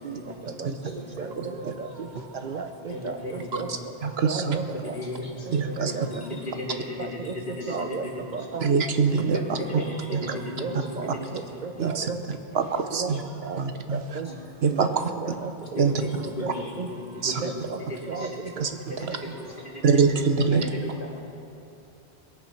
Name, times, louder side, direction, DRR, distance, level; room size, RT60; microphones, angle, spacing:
voice 1, 0.0-0.5 0.8-2.3 2.9-3.8 4.7-8.5 8.9-11.6 12.6-12.9 14.2-14.4 15.7-18.4 18.9-20.0 20.4-21.2, left 1 dB, 50° left, -3 dB, 2.5 m, -36 dB
voice 2, 1.2-1.9 2.4-3.2 3.6-3.7 4.2-4.8 5.8-6.0 7.0-7.3 7.7-8.1 8.3-8.6 10.6-11.1 11.6-12.2 12.9-13.1 13.4-13.6 14.2-14.3 14.7-15.8 16.8-16.9 17.4-17.5 18.1-18.3 18.6-18.7, right 5 dB, 55° right, 6 dB, 0.6 m, -33 dB
voice 3, 4.2-4.6 5.5-5.9 8.6-9.4 11.8-12.1 12.5-13.2 13.6-14.0 14.6-15.1 15.8-15.9 17.2-17.3 18.6-18.7 19.8-20.7, right 5 dB, 70° right, 7 dB, 1.1 m, -23 dB
21.5 x 8.8 x 5.8 m, 2.8 s
omnidirectional pair, 1.1 m